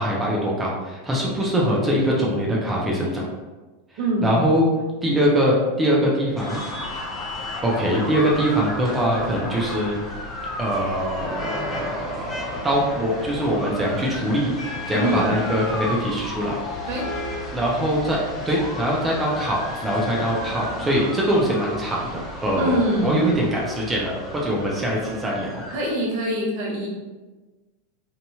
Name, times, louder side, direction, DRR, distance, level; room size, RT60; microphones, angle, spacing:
voice 1, 0.0-3.2 4.2-4.7 5.0-6.6 7.6-10.0 10.6-14.6 14.9-16.6 17.5-25.6, equal, 15° right, -3 dB, 0.7 m, -23 dB
voice 2, 4.0-4.4 14.9-15.3 16.9-17.0 22.6-23.3 25.7-26.9, right 1 dB, 55° right, -2 dB, 0.7 m, -24 dB
sound 1, 6.4-25.9, left 2 dB, 25° left, 0.6 m, -33 dB
2.8 x 2.7 x 2.3 m, 1.2 s
hypercardioid pair, 95°, 0 cm